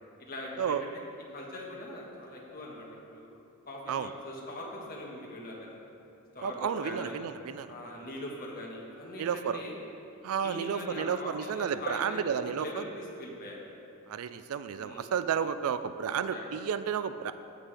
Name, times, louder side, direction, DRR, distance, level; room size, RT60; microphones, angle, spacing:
voice 1, 0.2-0.9 1.3-3.3 3.7-5.8 6.3-7.1 7.7-9.7 10.4-13.6 14.8-15.1 16.3-16.5, left 1 dB, 40° left, -3 dB, 1.5 m, -41 dB
voice 2, 6.4-7.7 9.2-9.6 10.2-12.8 14.1-17.3, right 7 dB, 70° right, 12 dB, 0.3 m, -32 dB
15.5 x 5.7 x 3.4 m, 2.8 s
head